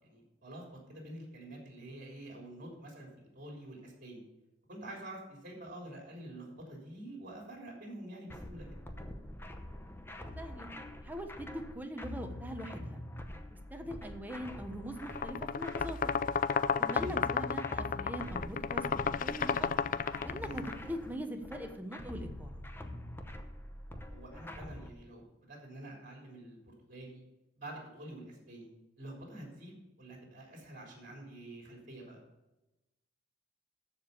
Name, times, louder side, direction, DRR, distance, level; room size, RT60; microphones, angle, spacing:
voice 1, 0.0-3.1 3.3-4.2 4.7-8.7 16.9-17.2 20.3-20.6 24.1-27.2 27.6-28.7 29.0-32.2, right 1 dB, 45° right, 0 dB, 3.4 m, -47 dB
sound 1, 8.3-24.9, left 1 dB, 10° left, 0.8 m, -45 dB
voice 2, 10.4-10.7 11.0-13.0 13.7-16.1 16.8-18.8 19.2-19.7 20.2-22.6, equal, 10° right, 5 dB, 1.1 m, -42 dB
sound 2, 15.0-20.8, left 6 dB, 45° left, 0.3 m, -32 dB
14.0 x 5.0 x 6.7 m, 1.0 s
head